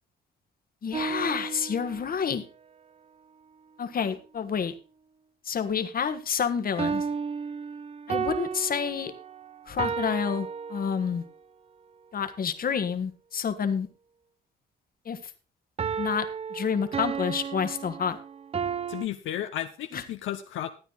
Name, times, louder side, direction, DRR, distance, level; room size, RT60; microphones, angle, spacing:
voice 1, 0.8-2.4 3.8-4.7 5.4-7.0 8.1-9.1 9.7-11.2 12.1-13.9 15.0-15.2 16.0-18.2 19.9-20.0, left 7 dB, 45° left, 9 dB, 1.3 m, -29 dB
sound 1, 0.9-2.3 6.8-11.3 15.8-19.1, right 6 dB, 30° right, 0.5 m, -33 dB
voice 2, 18.9-20.7, left 11 dB, 80° left, 6 dB, 0.8 m, -33 dB
13.0 x 9.0 x 3.9 m, 0.34 s
cardioid pair, 90°, 20 cm